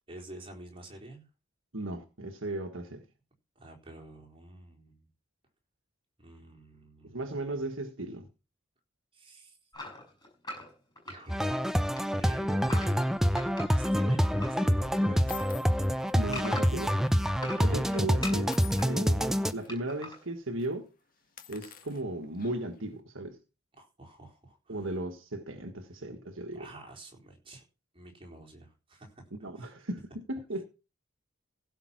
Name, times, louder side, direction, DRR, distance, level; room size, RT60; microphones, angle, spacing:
voice 1, 0.1-1.3 3.6-5.1 6.2-7.6 9.1-9.6 11.1-11.8 12.1-13.0 13.7-15.4 17.5-18.5 23.8-24.8 26.5-27.6 27.9-29.7, right 1 dB, 25° right, 4.1 m, -49 dB
voice 2, 1.7-3.0 7.0-8.3 16.1-17.0 17.4-20.9 21.5-23.4 24.7-26.7 29.4-30.6, right 2 dB, 70° right, 1.6 m, -36 dB
sound 1, 9.7-11.6 11.9-14.6 15.0-16.9 17.3-18.9 19.7-20.2, left 2 dB, 20° left, 6.4 m, -42 dB
sound 2, 11.3-19.5, equal, ahead, 0.6 m, -27 dB
sound 3, 13.6-13.9 14.6-14.7 15.3-17.2 17.5-17.7 18.5-19.7 20.1-20.3 20.6-20.7 21.2-22.8, left 9 dB, 40° left, 1.8 m, -50 dB
16.0 x 5.8 x 6.0 m
head